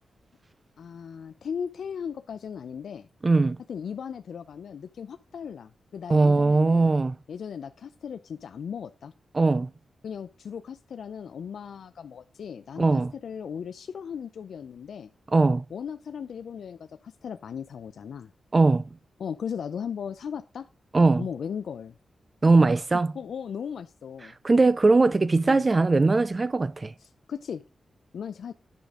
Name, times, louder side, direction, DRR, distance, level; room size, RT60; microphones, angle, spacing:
voice 1, 0.8-3.1 3.7-6.9 7.3-9.1 10.0-15.1 15.7-18.3 19.2-20.7 21.2-21.9 22.7-22.8 23.1-24.3 25.4-25.7 27.0-27.6 28.1-28.5, left 7 dB, 75° left, 0.4 m, -37 dB
voice 2, 3.2-3.6 6.1-7.1 9.3-9.7 12.8-13.1 15.3-15.6 18.5-18.8 20.9-21.3 22.4-23.1 24.4-26.9, right 3 dB, 30° right, 0.3 m, -20 dB
10.5 x 5.1 x 3.6 m
wide cardioid pair, 125°, 0 cm